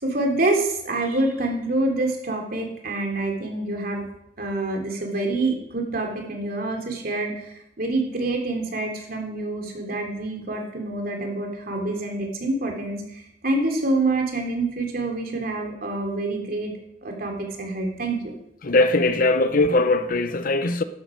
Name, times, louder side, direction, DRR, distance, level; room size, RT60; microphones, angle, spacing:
voice 1, 0.0-4.1 4.4-16.7 17.0-18.3, right 2 dB, 55° right, 3.0 m, -26 dB
voice 2, 18.6-20.8, left 2 dB, 50° left, 0.8 m, -20 dB
13.0 x 11.5 x 5.1 m
head